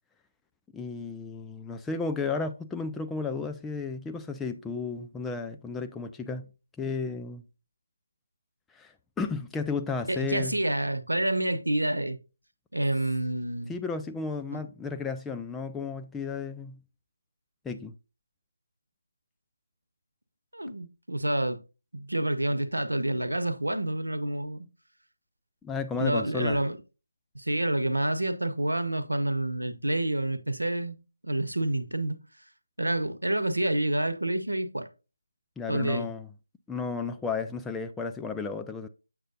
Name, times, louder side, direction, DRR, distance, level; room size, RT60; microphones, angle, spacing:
voice 1, 0.7-6.5 6.8-7.4 8.7-10.6 13.7-16.8 17.6-17.9 25.6-26.6 35.6-36.3 36.7-38.9, left 4 dB, 5° left, 0.3 m, -33 dB
voice 2, 10.1-12.2 12.7-13.7 14.5-14.6 20.5-21.6 21.9-24.7 26.0-26.8 27.3-31.0 31.2-32.2 32.8-34.9 35.7-36.1, right 1 dB, 80° right, 0.9 m, -28 dB
7.4 x 6.4 x 2.6 m
figure-of-eight pair, 155°, 0 cm